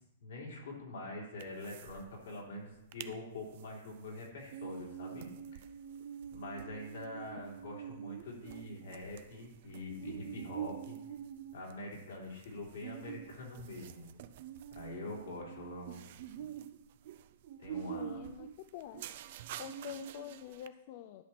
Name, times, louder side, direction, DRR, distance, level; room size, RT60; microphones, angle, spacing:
voice 1, 0.2-5.3 6.3-11.0 11.5-14.1 14.7-16.0 16.3-16.5 17.6-18.0, left 2 dB, 80° left, -2 dB, 3.2 m, -44 dB
sound 1, 1.4-2.0 2.3-2.4 2.7-3.1 3.5-20.7, right 9 dB, 55° right, 0.5 m, -46 dB
voice 2, 17.9-19.1 19.6-21.2, left 11 dB, 50° left, 9 dB, 0.4 m, -46 dB
11.0 x 5.8 x 4.3 m, 0.89 s
hypercardioid pair, 140°, 0 cm